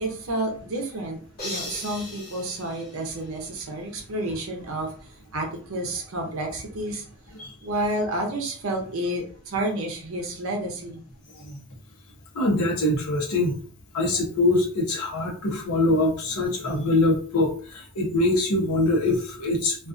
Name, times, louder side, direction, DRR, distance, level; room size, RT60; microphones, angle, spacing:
voice 1, 0.0-7.1 7.6-11.0, right 1 dB, 65° right, 1 dB, 0.6 m, -30 dB
sound 1, 1.4-3.7, left 2 dB, 40° left, 1.2 m, -38 dB
voice 2, 12.3-13.6 13.9-19.9, left 2 dB, 80° left, 0 dB, 0.8 m, -23 dB
2.5 x 2.4 x 2.4 m, 0.42 s
head